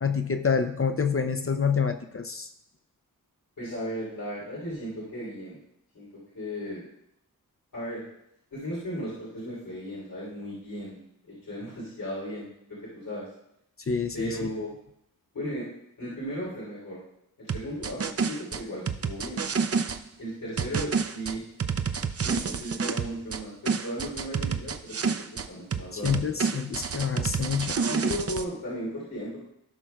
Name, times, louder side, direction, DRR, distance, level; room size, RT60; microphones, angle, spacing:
voice 1, 0.0-2.5 13.9-14.5 25.9-27.8, left 6 dB, 40° left, 7 dB, 0.6 m, -27 dB
voice 2, 3.6-5.6 5.9-6.8 7.7-8.0 8.5-11.0 11.3-13.3 14.1-14.7 15.3-15.7 16.0-17.0 17.4-19.5 20.2-21.4 22.2-25.2 25.5-26.2 27.8-29.4, equal, 75° left, -8 dB, 3.4 m, -36 dB
sound 1, 17.5-20.0 20.6-23.4 23.7-25.5 25.7-28.4, right 5 dB, 45° right, 0.6 m, -29 dB
16.5 x 6.1 x 2.3 m, 0.76 s
wide cardioid pair, 115°, 34 cm